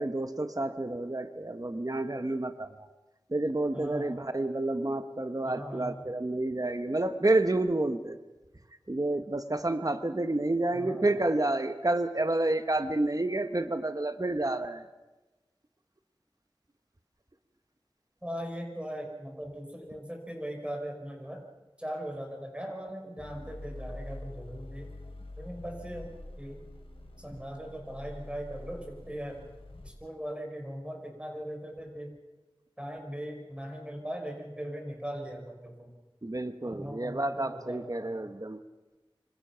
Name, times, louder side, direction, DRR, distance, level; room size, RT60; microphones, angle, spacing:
voice 1, 0.0-2.7 3.3-8.2 8.9-14.8 36.2-38.6, right 2 dB, 40° right, 9 dB, 1.3 m, -29 dB
voice 2, 3.7-4.2 5.4-6.0 10.7-11.1 18.2-21.4 21.8-24.9 25.4-26.6 27.2-29.4 29.8-32.1 32.8-35.9 36.6-38.3, equal, 10° right, 2 dB, 5.2 m, -39 dB
sound 1, 23.2-29.9, left 1 dB, 80° left, 3.8 m, -45 dB
26.0 x 25.5 x 5.9 m, 1.1 s
wide cardioid pair, 45°, 9 cm